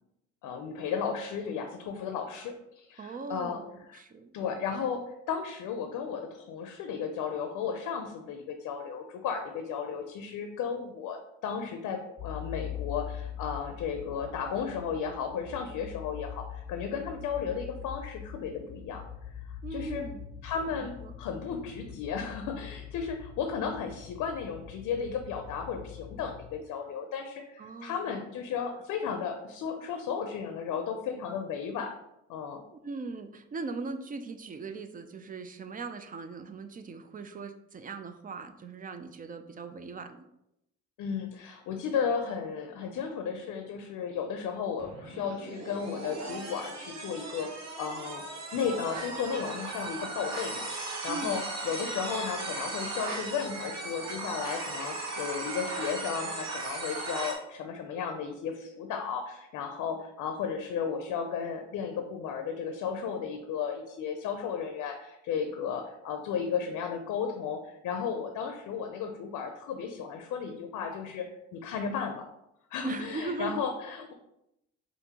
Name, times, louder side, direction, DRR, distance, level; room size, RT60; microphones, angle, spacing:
voice 1, 0.4-3.6 3.9-4.0 4.3-19.3 19.7-20.0 20.4-31.9 32.3-32.6 41.0-48.2 48.5-71.3 71.5-72.3 72.7-74.1, left 6 dB, 85° left, 5 dB, 0.5 m, -34 dB
voice 2, 3.0-4.3 19.6-20.2 21.0-21.1 27.6-28.2 28.7-28.8 32.7-40.3 51.1-51.4 72.8-73.6, right 4 dB, 30° right, 8 dB, 0.4 m, -39 dB
sound 1, 12.2-26.6, left 9 dB, 45° left, 0.6 m, -43 dB
sound 2, 44.8-57.4, right 2 dB, 60° right, 1.1 m, -37 dB
5.1 x 2.6 x 2.8 m, 0.83 s
cardioid pair, 90°, 30 cm